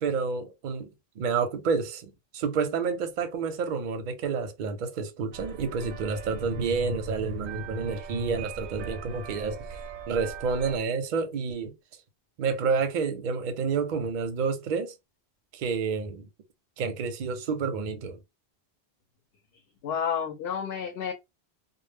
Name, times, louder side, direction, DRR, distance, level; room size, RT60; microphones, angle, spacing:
voice 1, 0.0-11.7 12.4-15.0 15.5-16.3 16.8-18.2, right 5 dB, 55° right, 0.6 m, -29 dB
sound 1, 5.3-10.8, right 5 dB, 85° right, 0.8 m, -41 dB
voice 2, 19.8-21.1, left 7 dB, 70° left, 0.7 m, -30 dB
2.0 x 2.0 x 3.3 m
omnidirectional pair, 1.1 m